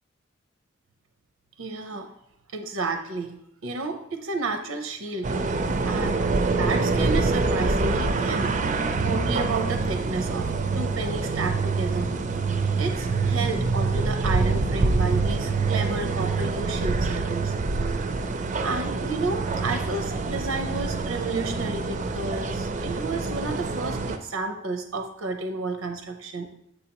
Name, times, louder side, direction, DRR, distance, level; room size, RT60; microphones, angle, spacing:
voice 1, 1.6-2.1 2.5-3.4 3.6-6.2 6.5-8.5 9.0-10.5 10.7-12.1 12.8-17.5 18.4-26.5, right 3 dB, 90° right, 6 dB, 0.6 m, -31 dB
sound 1, 5.2-24.2, right 3 dB, 40° right, 0.4 m, -26 dB
6.7 x 5.5 x 2.9 m, 0.77 s
head